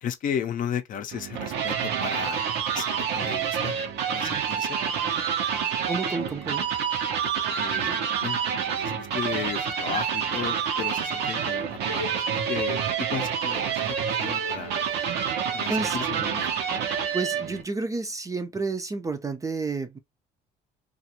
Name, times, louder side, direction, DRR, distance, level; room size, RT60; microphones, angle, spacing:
voice 1, 0.0-3.8 4.1-4.8 7.6-12.2 12.5-14.8 15.5-16.6, left 8 dB, 50° left, 0.5 m, -35 dB
sound 1, 1.1-17.6, right 7 dB, 80° right, 0.7 m, -28 dB
voice 2, 5.9-6.7 15.7-16.0 17.1-20.0, right 3 dB, 20° right, 0.4 m, -30 dB
2.5 x 2.4 x 2.8 m
cardioid pair, 110°, 17 cm